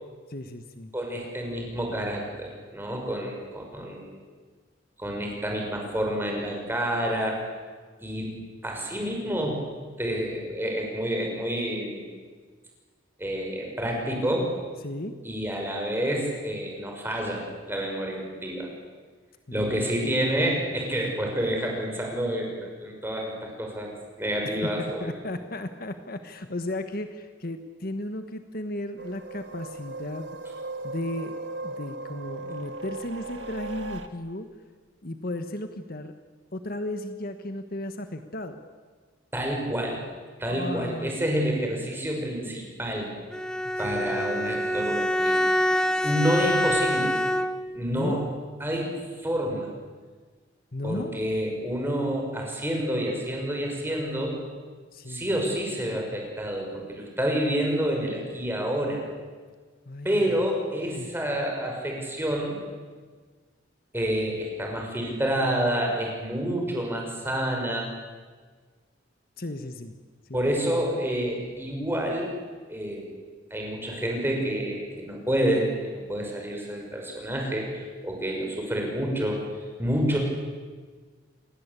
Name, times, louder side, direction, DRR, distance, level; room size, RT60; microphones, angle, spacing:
voice 1, 0.3-0.9 14.8-15.1 19.5-19.9 24.4-30.3 30.8-31.4 31.6-34.5 35.0-36.1 36.5-38.6 40.5-41.6 43.8-44.2 46.0-46.1 47.8-48.3 50.7-51.2 54.9-55.3 59.9-60.4 60.9-61.1 69.4-70.0 70.3-70.5, left 1 dB, 50° left, 8 dB, 1.4 m, -35 dB
voice 2, 0.9-4.1 5.0-7.4 8.0-8.3 8.6-9.6 10.0-12.1 13.2-14.5 15.2-18.7 19.5-23.9 24.2-25.1 39.3-40.0 40.4-43.1 43.8-45.7 46.0-47.2 47.7-48.2 48.6-48.9 49.2-49.7 50.8-54.4 55.1-59.0 60.0-62.6 63.9-67.9 70.3-72.3 72.7-73.1 73.5-79.4 79.8-80.2, equal, 10° right, 0 dB, 6.0 m, -28 dB
sound 1, 29.0-34.1, right 2 dB, 75° right, 1.9 m, -37 dB
Bowed string instrument, 43.3-47.8, equal, 5° left, 1.0 m, -25 dB
28.0 x 20.5 x 8.4 m, 1.5 s
head